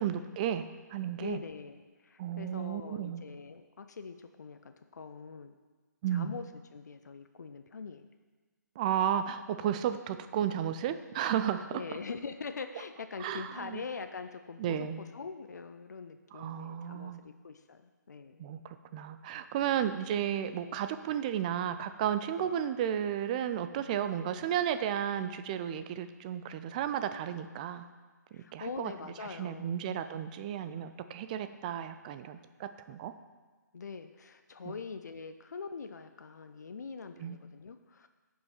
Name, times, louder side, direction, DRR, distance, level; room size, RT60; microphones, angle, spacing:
voice 1, 0.0-1.4 2.2-3.2 6.0-6.4 8.8-11.8 13.2-13.8 14.6-15.0 16.3-17.2 18.4-27.8 28.3-28.9 29.4-33.1 37.2-37.4, right 10 dB, 25° right, 11 dB, 0.4 m, -33 dB
voice 2, 1.2-5.6 6.1-8.1 11.7-18.5 19.8-20.0 22.3-22.5 28.3-29.8 33.7-38.1, left 5 dB, 65° left, 8 dB, 0.6 m, -43 dB
14.5 x 5.6 x 4.4 m, 1.4 s
figure-of-eight pair, 135°, 10 cm